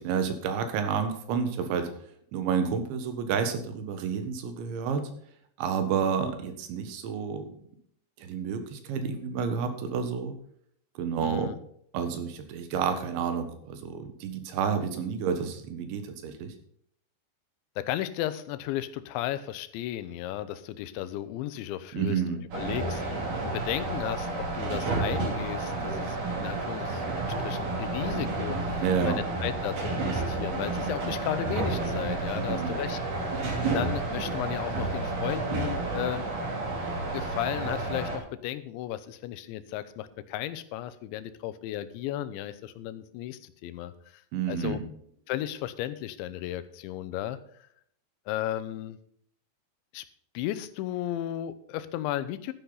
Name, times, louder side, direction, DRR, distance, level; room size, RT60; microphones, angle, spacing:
voice 1, 0.0-1.9 2.3-5.1 5.6-7.5 8.2-10.3 11.0-11.6 11.9-16.5 21.9-22.4 28.8-29.2 32.4-32.8 44.3-44.8, right 6 dB, 80° right, 7 dB, 3.7 m, -30 dB
voice 2, 11.2-11.6 17.8-22.2 22.5-27.0 27.4-33.3 33.6-36.3 37.1-44.2 44.5-44.8 45.3-47.4 48.3-49.0 49.9-50.1 50.3-52.5, left 13 dB, 85° left, 13 dB, 3.1 m, -34 dB
sound 1, 22.5-38.2, right 3 dB, 50° right, 3.7 m, -31 dB
12.5 x 10.0 x 4.0 m, 0.67 s
omnidirectional pair, 5.2 m